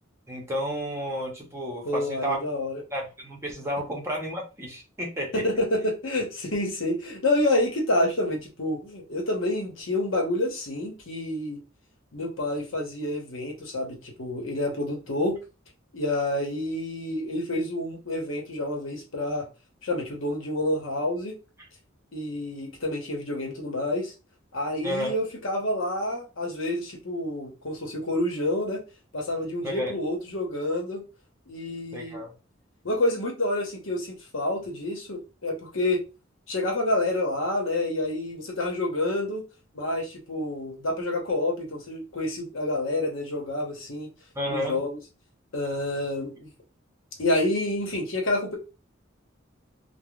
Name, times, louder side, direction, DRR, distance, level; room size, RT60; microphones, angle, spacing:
voice 1, 0.3-2.4 2.9-5.4 24.8-25.1 29.6-29.9 31.9-32.3 44.3-44.8, equal, 15° right, 0.8 m, -31 dB
voice 2, 1.8-2.8 5.3-11.6 12.1-15.4 15.9-19.5 19.8-21.3 22.1-24.1 24.5-28.8 29.1-31.0 31.5-32.2 32.8-36.0 36.5-39.4 39.7-44.1 44.5-45.0 45.5-46.5 47.2-48.6, left 1 dB, 75° left, 1.0 m, -28 dB
3.4 x 2.2 x 2.3 m
head